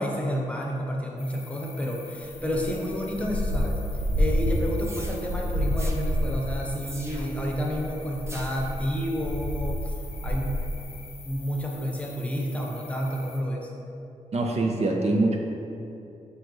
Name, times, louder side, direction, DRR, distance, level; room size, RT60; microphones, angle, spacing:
voice 1, 0.0-3.8 4.2-9.9 10.2-10.6 11.2-13.7, equal, 10° left, -2 dB, 0.9 m, -30 dB
sound 1, 1.2-13.4, left 5 dB, 45° left, 0.6 m, -47 dB
sound 2, 2.3-10.8, equal, 90° right, 0.9 m, -29 dB
sound 3, 4.8-5.2 5.8-6.0 6.8-7.4 8.3-8.7, right 1 dB, 20° right, 0.7 m, -42 dB
voice 2, 14.3-15.4, right 2 dB, 50° right, 1 dB, 0.7 m, -24 dB
7.7 x 4.8 x 3.1 m, 2.7 s
cardioid pair, 95°, 14 cm